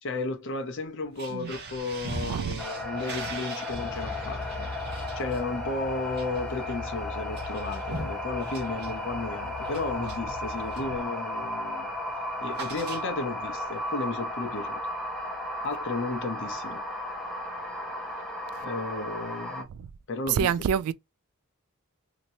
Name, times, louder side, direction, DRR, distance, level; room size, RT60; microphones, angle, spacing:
voice 1, 0.0-11.9 12.4-14.8 15.6-16.8 18.6-19.7 20.1-20.7, left 3 dB, 60° left, 0.8 m, -34 dB
sound 1, 1.0-11.0 11.3-11.6 11.9-13.5, right 3 dB, 50° right, 0.9 m, -42 dB
voice 2, 2.2-2.6 20.3-20.9, right 8 dB, 85° right, 0.3 m, -26 dB
sound 2, 2.6-19.6, left 1 dB, ahead, 0.7 m, -35 dB
sound 3, 3.7-10.7, left 2 dB, 20° left, 1.4 m, -41 dB
2.9 x 2.8 x 2.7 m
head